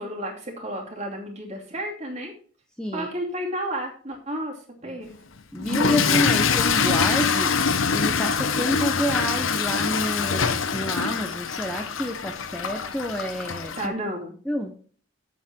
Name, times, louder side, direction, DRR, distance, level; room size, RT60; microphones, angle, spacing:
voice 1, 0.0-2.3 2.9-5.1 6.5-6.6 13.8-14.3, right 1 dB, 35° right, 0 dB, 2.6 m, -32 dB
voice 2, 2.8-3.1 4.9-5.0 5.5-7.5 7.9-13.9 14.5-14.7, equal, 5° left, 2 dB, 0.8 m, -29 dB
Toilet flush / Fill (with liquid), 5.6-13.9, left 5 dB, 90° left, 0.9 m, -24 dB
8.5 x 7.4 x 4.5 m, 0.42 s
head